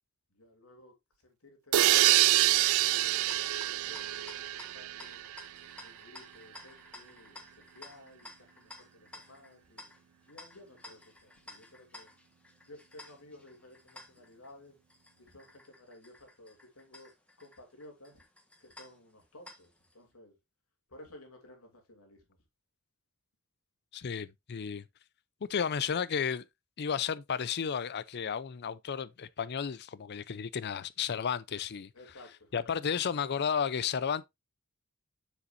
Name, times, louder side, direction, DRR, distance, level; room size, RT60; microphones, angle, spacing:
voice 1, 0.3-1.0 1.2-1.9 2.4-5.2 5.8-9.9 10.3-12.1 12.7-14.8 15.2-17.1 17.4-18.3 18.6-20.4 20.9-22.3 31.9-32.7, left 1 dB, 85° left, 3.0 m, -55 dB
sound 1, 1.7-5.5, right 15 dB, 75° right, 0.4 m, -26 dB
sound 2, 3.1-19.9, left 2 dB, 5° left, 1.4 m, -54 dB
voice 2, 23.9-24.8 25.5-26.4 26.8-31.9 32.5-34.3, left 7 dB, 50° left, 0.5 m, -33 dB
7.1 x 6.9 x 2.6 m
head